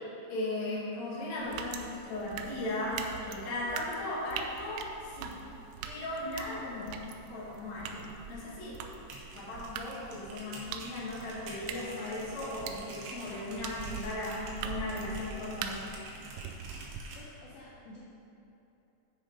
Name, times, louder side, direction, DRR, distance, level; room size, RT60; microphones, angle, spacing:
voice 1, 0.3-5.4 5.8-6.9 7.3-8.8 9.3-15.9, left 1 dB, 50° left, -7 dB, 2.7 m, -37 dB
sound 1, 1.4-17.0, right 6 dB, 90° right, 2.3 m, -43 dB
sound 2, 9.0-17.2, right 2 dB, 70° right, 2.7 m, -48 dB
voice 2, 17.2-18.0, left 2 dB, 75° left, -5 dB, 2.9 m, -51 dB
8.1 x 6.3 x 5.1 m, 2.9 s
omnidirectional pair, 5.2 m